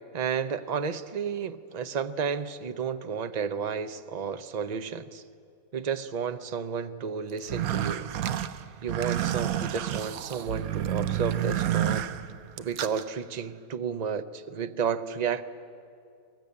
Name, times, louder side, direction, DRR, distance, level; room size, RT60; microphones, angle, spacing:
voice 1, 0.1-5.2 5.7-8.1 8.8-12.1 12.6-15.4, right 6 dB, 45° right, 11 dB, 0.5 m, -32 dB
sound 1, 7.4-13.0, right 11 dB, 70° right, 1.2 m, -30 dB
22.0 x 21.0 x 8.5 m, 2.5 s
omnidirectional pair, 1.6 m